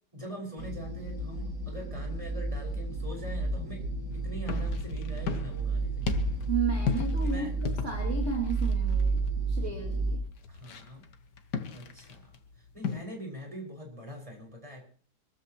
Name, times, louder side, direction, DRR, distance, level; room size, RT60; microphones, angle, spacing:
voice 1, 0.1-3.8 4.1-6.1 7.2-7.5 10.5-11.0 11.7-14.8, equal, 20° right, 0 dB, 5.9 m, -43 dB
sound 1, 0.6-10.2, right 3 dB, 75° right, 3.0 m, -31 dB
sound 2, 4.1-13.0, left 6 dB, 75° left, 1.9 m, -37 dB
voice 2, 6.5-10.2, right 5 dB, 40° right, -2 dB, 3.0 m, -33 dB
25.5 x 14.0 x 3.1 m, 0.44 s
omnidirectional pair, 1.9 m